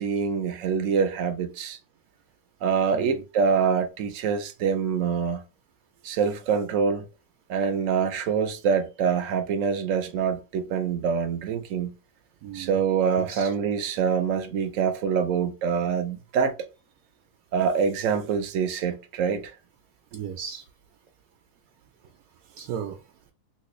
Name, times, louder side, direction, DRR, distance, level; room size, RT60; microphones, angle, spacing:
voice 1, 0.0-1.8 2.6-5.4 6.0-7.1 7.5-11.9 12.5-16.5 17.5-19.5, right 6 dB, 65° right, 0.9 m, -25 dB
voice 2, 12.4-12.8 13.2-13.5 20.1-20.6 22.5-23.0, right 8 dB, 85° right, 1.1 m, -35 dB
3.2 x 2.9 x 2.9 m
omnidirectional pair, 1.6 m